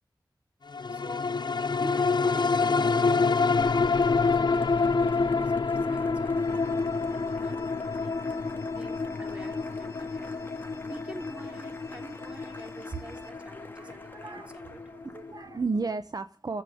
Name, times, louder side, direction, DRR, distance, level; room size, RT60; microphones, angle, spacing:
sound 1, 0.7-15.4 15.8-15.9, left 4 dB, 65° left, 0.7 m, -27 dB
Applause, 0.8-15.6, left 2 dB, 25° left, 1.9 m, -50 dB
voice 1, 0.9-1.3 1.7-4.8 5.0-14.8, equal, 15° right, 5 dB, 3.0 m, -47 dB
sound 2, 6.3-13.3, left 2 dB, 40° left, 3.1 m, -53 dB
voice 2, 13.7-16.6, right 4 dB, 50° right, 10 dB, 0.9 m, -34 dB
15.0 x 7.5 x 9.2 m, 0.37 s
wide cardioid pair, 80°, 8 cm